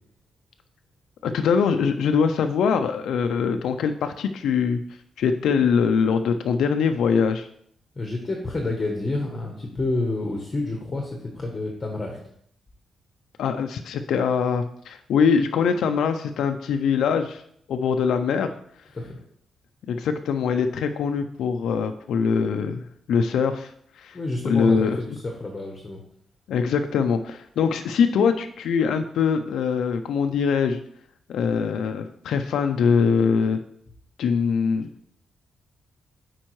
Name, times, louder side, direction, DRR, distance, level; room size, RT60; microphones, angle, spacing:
voice 1, 1.2-4.8 5.2-7.5 13.4-17.4 17.7-18.5 19.9-24.2 24.4-25.0 26.5-30.8 31.3-33.6 34.2-34.9, left 6 dB, 85° left, 7 dB, 0.4 m, -23 dB
voice 2, 8.0-12.2 18.9-19.2 24.1-26.0, left 2 dB, 25° left, 1 dB, 0.9 m, -29 dB
8.7 x 4.5 x 3.1 m, 0.69 s
wide cardioid pair, 150°, 0 cm